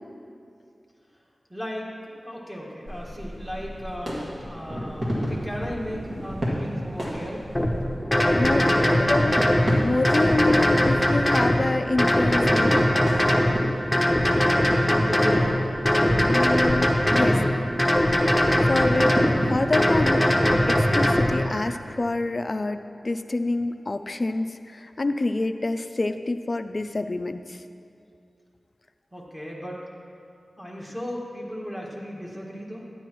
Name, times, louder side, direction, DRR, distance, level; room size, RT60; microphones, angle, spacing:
voice 1, 1.5-7.4 8.2-9.4 14.3-15.8 29.1-29.8 30.6-32.9, equal, 10° right, -4 dB, 1.7 m, -36 dB
sound 1, 2.9-20.0, equal, 55° right, 1.9 m, -33 dB
sound 2, 7.5-7.7 8.1-9.6 10.0-11.6 12.0-13.5 13.9-15.4 15.8-17.4 17.8-19.3 19.7-21.3, left 1 dB, 10° left, 0.9 m, -20 dB
voice 2, 8.4-8.7 9.1-9.4 9.8-12.9 16.2-17.4 18.7-19.2 19.5-27.6, left 2 dB, 45° left, 9 dB, 0.4 m, -27 dB
12.0 x 9.9 x 3.1 m, 2.5 s
wide cardioid pair, 95°, 0 cm